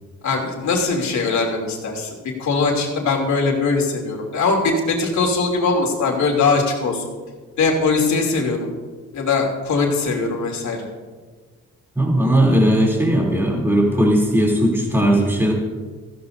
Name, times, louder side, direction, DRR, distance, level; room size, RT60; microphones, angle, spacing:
voice 1, 0.2-7.1 7.6-8.7 9.1-10.9, left 4 dB, 70° left, 1 dB, 2.9 m, -21 dB
voice 2, 11.9-15.5, right 1 dB, 10° right, -3 dB, 3.2 m, -17 dB
16.5 x 15.0 x 2.7 m, 1.4 s
cardioid pair, 90°, 30 cm